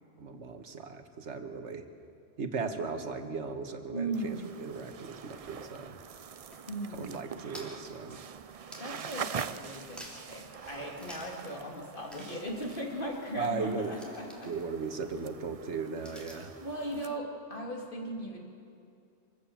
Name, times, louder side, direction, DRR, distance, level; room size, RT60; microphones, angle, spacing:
voice 1, 0.2-1.9 2.4-6.0 6.9-8.2 13.4-13.9 14.4-16.5, right 5 dB, 80° right, 7 dB, 1.7 m, -37 dB
voice 2, 3.9-4.5 6.7-7.2 8.8-14.5 16.3-18.4, right 1 dB, 50° left, 0 dB, 3.0 m, -38 dB
sound 1, 4.1-17.2, right 7 dB, 45° right, 0.5 m, -44 dB
sound 2, 6.3-9.5 9.8-10.4 10.9-11.5 11.7-11.8 12.1-16.6, equal, ahead, 3.2 m, -53 dB
25.0 x 15.5 x 7.4 m, 2.4 s
omnidirectional pair, 1.2 m